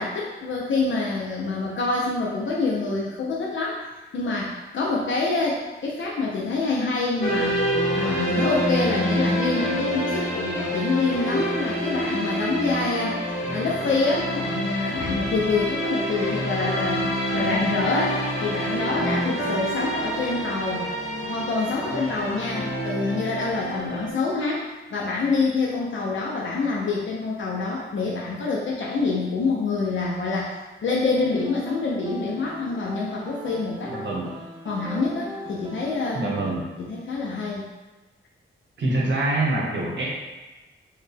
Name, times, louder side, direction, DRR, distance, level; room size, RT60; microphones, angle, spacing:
voice 1, 0.0-3.9 4.1-13.2 13.5-20.9 21.2-33.9 34.7-36.2 36.8-37.6, left 3 dB, 65° left, -3 dB, 0.5 m, -26 dB
sound 1, 7.2-24.1, equal, 30° left, 1.4 m, -27 dB
voice 2, 17.3-17.7 33.9-34.4 36.1-36.7 38.8-40.1, right 2 dB, 60° right, -3 dB, 0.9 m, -26 dB
sound 2, 31.1-36.6, equal, 20° right, 0.4 m, -39 dB
4.6 x 2.2 x 3.3 m, 1.2 s
wide cardioid pair, 180°, 21 cm